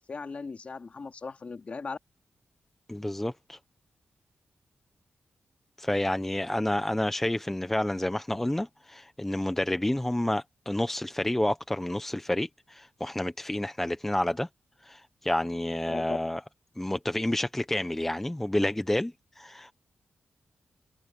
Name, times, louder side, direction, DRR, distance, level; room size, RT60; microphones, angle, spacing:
voice 1, 0.0-2.0 15.9-16.2, left 4 dB, 35° left, 2.2 m, -38 dB
voice 2, 2.9-3.6 5.8-14.5 14.8-16.4 16.8-19.7, left 1 dB, 5° left, 0.5 m, -29 dB
wide cardioid pair, 170°, 4 cm